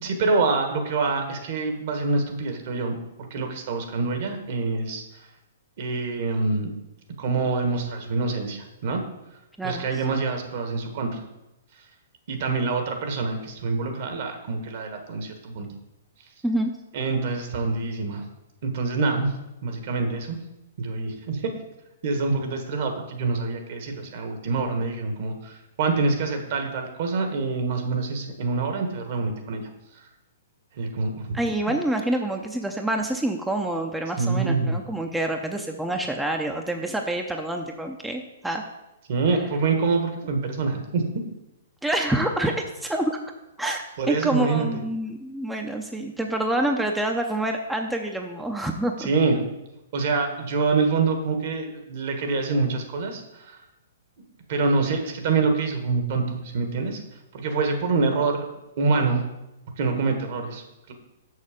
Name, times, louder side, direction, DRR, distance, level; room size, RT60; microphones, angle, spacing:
voice 1, 0.0-5.0 5.8-6.7 7.2-9.0 9.6-11.2 12.3-15.7 16.9-18.2 18.6-19.3 19.6-20.4 20.8-21.5 22.0-29.6 30.7-31.4 34.2-34.8 39.1-41.0 44.0-44.8 49.0-49.4 49.9-53.6 54.5-57.0 57.3-58.5 58.8-59.2 59.8-60.9, right 4 dB, 55° right, 4 dB, 1.4 m, -26 dB
voice 2, 31.3-38.6 41.8-42.5 42.8-43.2 43.6-49.1, right 1 dB, 5° right, 3 dB, 0.6 m, -27 dB
6.5 x 6.5 x 5.1 m, 0.95 s
hypercardioid pair, 125°, 0 cm